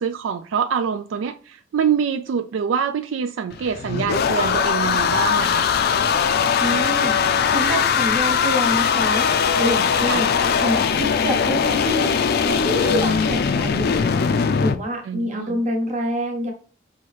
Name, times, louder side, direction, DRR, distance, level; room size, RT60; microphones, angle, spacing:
voice 1, 0.0-5.7 10.1-10.2 15.1-15.6, right 7 dB, 75° right, 0.3 m, -25 dB
sound 1, 3.5-14.8, left 6 dB, 55° left, 0.4 m, -20 dB
voice 2, 6.6-7.1 7.5-9.3 9.6-10.3 10.6-14.2 14.6-16.5, equal, 40° right, 1.1 m, -26 dB
5.5 x 2.7 x 3.2 m
head